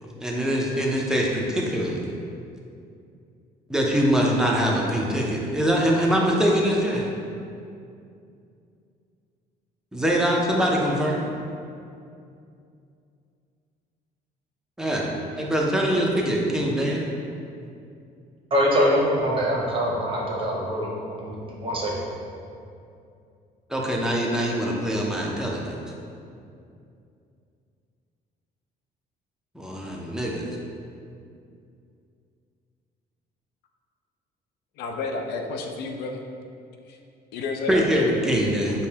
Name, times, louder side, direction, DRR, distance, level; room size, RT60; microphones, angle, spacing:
voice 1, 0.0-2.0 3.7-7.1 9.9-11.3 14.8-17.0 23.7-25.8 29.5-30.5 37.7-38.9, equal, 5° right, -2 dB, 0.5 m, -23 dB
voice 2, 18.5-20.9 21.2-22.0, equal, 30° right, -4 dB, 0.8 m, -23 dB
voice 3, 34.8-36.3 36.9-37.0 37.3-37.9, left 3 dB, 75° left, 3 dB, 0.4 m, -31 dB
5.1 x 2.2 x 2.8 m, 2.5 s
cardioid pair, 110°, 17 cm